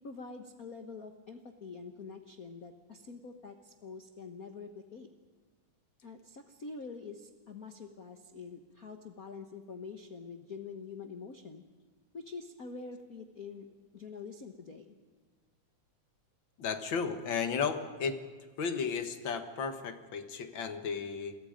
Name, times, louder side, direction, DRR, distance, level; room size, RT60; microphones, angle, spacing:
voice 1, 0.0-5.1 6.0-11.6 12.1-13.7 13.9-15.0, left 4 dB, 65° left, 5 dB, 0.8 m, -46 dB
voice 2, 16.6-18.2 18.6-21.4, left 6 dB, 50° left, 8 dB, 1.7 m, -34 dB
29.5 x 23.0 x 5.2 m, 1.5 s
omnidirectional pair, 3.5 m